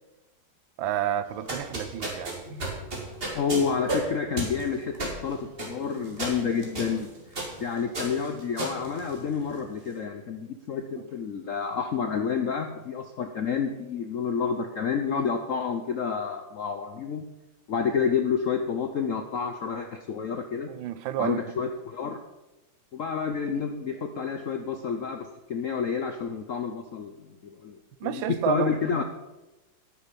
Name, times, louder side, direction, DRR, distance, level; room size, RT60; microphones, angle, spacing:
voice 1, 0.8-2.4 20.7-21.4 28.0-28.7, right 10 dB, 80° right, 1.4 m, -29 dB
sound 1, 1.3-9.7, right 2 dB, 30° right, 2.4 m, -34 dB
voice 2, 3.3-5.0 5.2-17.2 17.7-20.7 21.2-22.2 22.9-27.1 27.4-27.8 28.0-29.0, left 6 dB, 70° left, 0.7 m, -29 dB
9.9 x 9.2 x 5.2 m
omnidirectional pair, 2.2 m